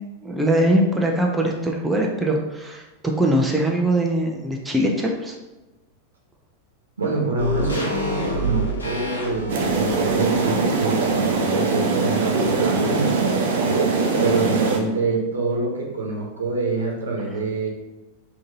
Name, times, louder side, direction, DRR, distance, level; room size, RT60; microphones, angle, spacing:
voice 1, 0.0-5.3 17.3-17.4, right 1 dB, 10° right, 0 dB, 0.5 m, -22 dB
voice 2, 7.0-13.3 13.6-17.7, right 3 dB, 75° right, -2 dB, 1.0 m, -26 dB
sound 1, 7.4-11.8 12.1-12.2, right 1 dB, 75° left, 0.8 m, -29 dB
sound 2, 9.5-14.8, right 4 dB, 55° right, 0.6 m, -21 dB
3.7 x 2.7 x 3.9 m, 1.1 s
figure-of-eight pair, 90°, 0 cm